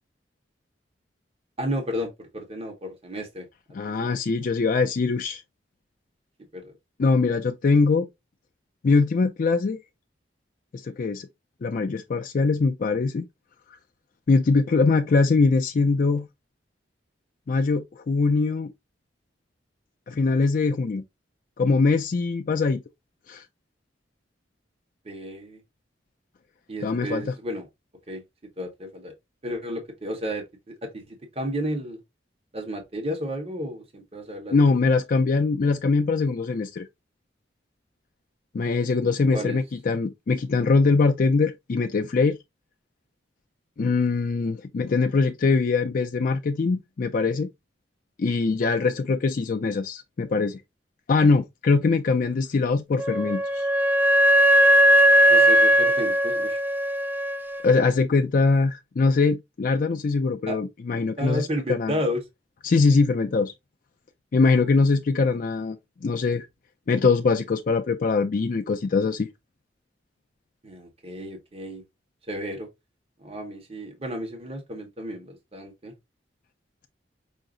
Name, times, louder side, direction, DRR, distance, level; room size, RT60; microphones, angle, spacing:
voice 1, 1.6-3.4 3.8-4.1 4.4-4.5 6.5-6.7 7.2-7.3 25.0-25.6 26.7-27.7 28.1-28.2 28.6-29.1 29.4-32.0 32.5-34.9 39.3-39.6 48.9-49.2 55.3-56.6 60.5-60.6 61.2-62.2 70.6-71.8 72.3-72.7 73.2-75.9, equal, 35° right, 1.2 m, -32 dB
voice 2, 3.7-5.4 7.0-8.1 8.8-9.8 10.7-11.3 11.6-13.2 14.3-16.3 17.5-18.7 20.1-21.0 21.6-22.8 23.3-23.4 26.8-27.3 34.5-36.9 38.5-42.4 43.8-47.5 48.2-50.6 51.1-53.7 57.6-61.9 62.6-63.5 64.3-65.8 66.0-66.5 66.9-69.3, left 4 dB, 50° left, 0.4 m, -22 dB
Wind instrument woodwind instrument, 53.0-57.6, equal, 10° right, 0.4 m, -19 dB
5.6 x 2.0 x 3.7 m
head